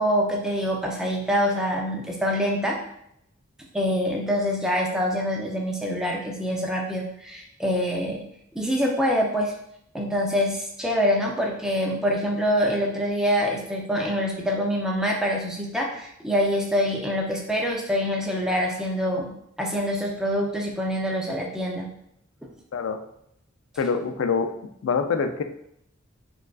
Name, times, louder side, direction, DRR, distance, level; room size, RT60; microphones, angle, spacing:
voice 1, 0.0-2.8 3.7-8.3 8.5-9.5 9.9-19.3 19.6-21.9, equal, 5° right, -1 dB, 0.5 m, -25 dB
voice 2, 23.8-24.5 24.8-25.4, left 5 dB, 70° left, 7 dB, 0.4 m, -25 dB
4.6 x 2.4 x 2.3 m, 0.75 s
head